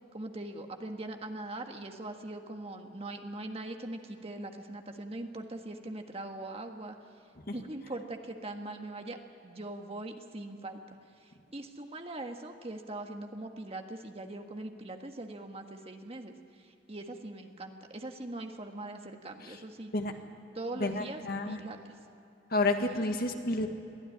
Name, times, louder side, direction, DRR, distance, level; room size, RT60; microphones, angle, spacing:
voice 1, 0.1-7.0 7.5-9.2 9.4-10.8 11.2-19.9 20.5-21.9 22.8-23.1, right 2 dB, 35° right, 4 dB, 1.6 m, -41 dB
voice 2, 20.8-21.6 22.5-23.7, left 2 dB, 55° left, 5 dB, 1.8 m, -30 dB
22.5 x 14.5 x 9.9 m, 2.9 s
head